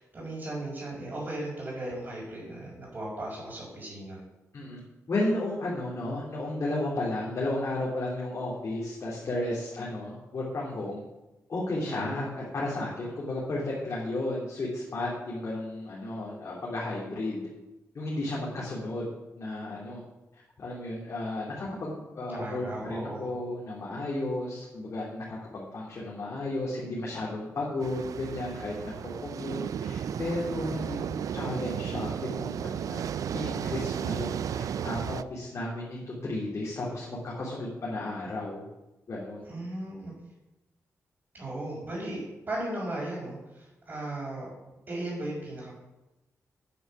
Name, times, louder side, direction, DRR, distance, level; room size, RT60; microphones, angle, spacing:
voice 1, 0.0-4.2 11.8-12.2 22.3-23.3 39.4-40.1 41.3-44.5 44.9-45.7, right 1 dB, 35° right, -8 dB, 4.8 m, -36 dB
voice 2, 5.1-11.0 11.5-17.5 17.9-20.0 20.6-33.0 33.3-38.6 39.1-39.4, left 2 dB, 50° left, -6 dB, 3.1 m, -33 dB
sound 1, 27.8-35.2, right 8 dB, 75° right, 0.4 m, -34 dB
9.7 x 7.1 x 7.3 m, 0.99 s
wide cardioid pair, 125°, 6 cm